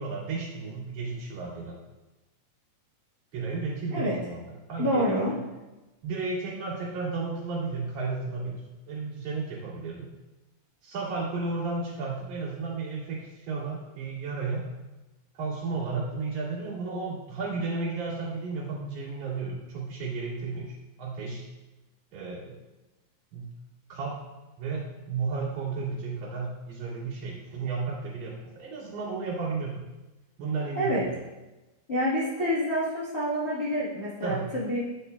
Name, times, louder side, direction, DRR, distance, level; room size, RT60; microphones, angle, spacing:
voice 1, 0.0-1.8 3.3-5.4 6.0-10.1 10.8-14.7 15.4-20.7 21.0-21.4 22.1-22.6 23.3-23.5 23.9-24.2 24.6-29.8 30.4-31.2 34.2-34.5, right 4 dB, 65° right, -8 dB, 3.4 m, -33 dB
voice 2, 4.8-5.3 30.7-31.0 31.9-34.8, equal, 65° left, -10 dB, 0.6 m, -27 dB
9.5 x 5.4 x 2.3 m, 1.1 s
omnidirectional pair, 3.5 m